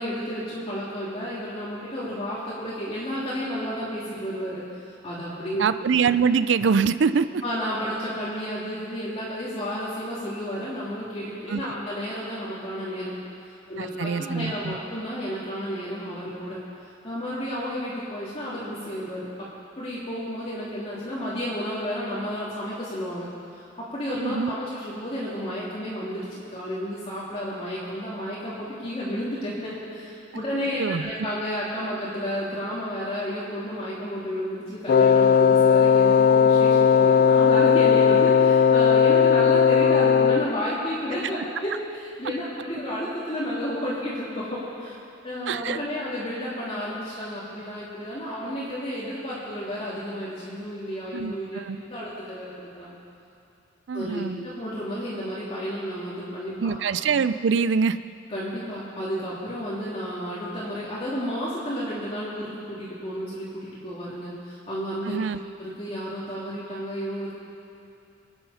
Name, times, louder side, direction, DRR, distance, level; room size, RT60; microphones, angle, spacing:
voice 1, 0.0-4.6 5.0-5.6 7.4-13.1 13.7-16.6 17.0-19.3 19.8-23.3 23.5-41.7 42.2-45.0 45.2-52.9 53.9-56.7 58.3-65.3 65.6-67.3, equal, 30° left, -8 dB, 2.8 m, -32 dB
voice 2, 5.6-7.4 11.5-11.6 13.8-14.8 24.2-24.5 30.8-31.1 45.5-45.8 51.1-51.8 53.9-54.5 56.6-58.0 65.0-65.4, right 5 dB, 70° right, 13 dB, 0.4 m, -24 dB
Wind instrument woodwind instrument, 34.9-40.6, left 7 dB, 45° left, 0.3 m, -17 dB
25.0 x 9.8 x 5.7 m, 2.6 s
head